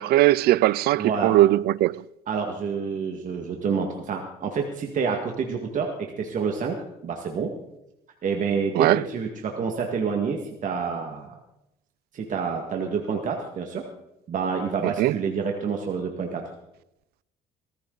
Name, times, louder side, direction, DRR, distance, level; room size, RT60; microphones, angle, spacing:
voice 1, 0.0-2.0 8.8-9.0 14.8-15.1, right 15 dB, 70° right, 0.4 m, -20 dB
voice 2, 1.0-1.4 2.3-6.8 7.0-7.5 8.2-11.4 12.1-13.8 14.3-16.4, right 5 dB, 50° right, 1.9 m, -28 dB
18.0 x 14.5 x 4.0 m
cardioid pair, 110°, 17 cm